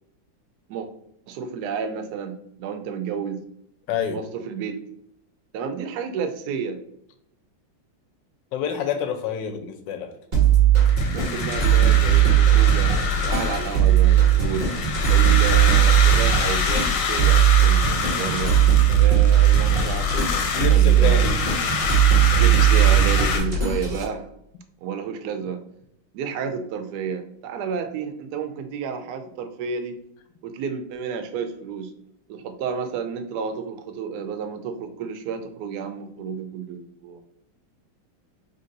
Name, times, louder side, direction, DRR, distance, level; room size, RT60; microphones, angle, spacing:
voice 1, 1.3-3.4 4.1-4.8 5.5-6.8 11.1-14.7 15.1-18.6 19.0-21.3 22.3-24.3 24.8-25.6 26.1-30.0 30.4-31.9 32.3-37.2, right 6 dB, 75° right, 7 dB, 0.9 m, -31 dB
voice 2, 3.9-4.2 8.5-10.1 20.5-21.5, left 7 dB, 75° left, 6 dB, 1.1 m, -27 dB
sound 1, 10.3-24.0, right 10 dB, 25° right, 1.3 m, -18 dB
sound 2, 10.8-23.4, left 5 dB, 90° left, 1.6 m, -27 dB
3.7 x 2.7 x 3.8 m, 0.73 s
omnidirectional pair, 2.2 m